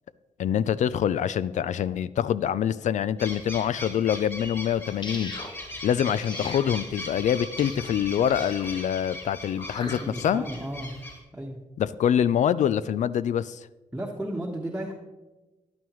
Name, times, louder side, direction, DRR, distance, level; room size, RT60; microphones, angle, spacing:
voice 1, 0.4-5.3 5.8-10.4 11.8-13.7, left 9 dB, 70° left, 16 dB, 0.4 m, -25 dB
sound 1, 3.2-11.2, left 1 dB, 20° left, 4.0 m, -39 dB
sound 2, 5.0-5.5 6.2-6.7 7.6-7.8 8.3-8.7 9.6-10.0, left 2 dB, 35° left, 1.3 m, -39 dB
voice 2, 9.8-10.9 11.3-11.6 13.9-14.9, right 1 dB, 10° right, -2 dB, 1.2 m, -34 dB
13.0 x 10.5 x 3.1 m, 1.1 s
cardioid pair, 90°, 13 cm